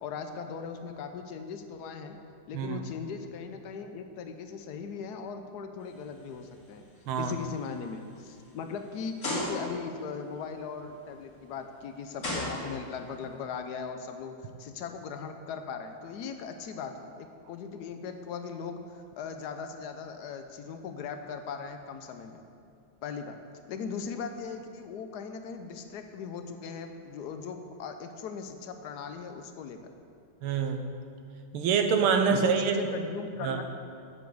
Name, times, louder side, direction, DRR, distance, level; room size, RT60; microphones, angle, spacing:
voice 1, 0.0-2.2 2.5-6.8 7.2-22.4 23.0-23.4 23.7-29.8 32.3-33.6, left 6 dB, 75° left, 7 dB, 0.9 m, -39 dB
sound 1, 6.0-6.4 6.9-7.0 7.7-7.8 9.2-9.9 11.4-11.5 12.2-13.1, left 1 dB, 45° left, 2.7 m, -33 dB
voice 2, 30.4-30.8 31.5-33.0 33.4-33.6, right 6 dB, 80° right, 6 dB, 1.7 m, -26 dB
8.3 x 7.0 x 7.7 m, 2.4 s
omnidirectional pair, 2.4 m